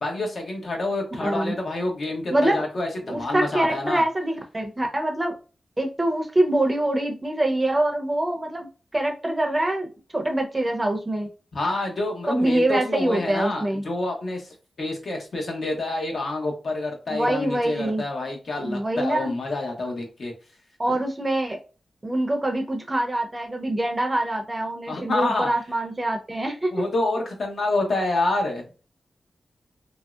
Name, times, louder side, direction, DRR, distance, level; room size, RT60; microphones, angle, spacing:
voice 1, 0.0-4.0 11.5-20.3 24.9-25.5 26.7-28.7, left 2 dB, 60° left, 0.9 m, -28 dB
voice 2, 2.3-2.6 3.1-5.4 5.8-8.7 8.9-11.3 12.3-13.8 17.1-18.0 18.6-19.3 20.8-21.6 22.0-26.7, right 1 dB, 20° right, 0.6 m, -24 dB
3.0 x 2.7 x 2.3 m
wide cardioid pair, 125°, 0 cm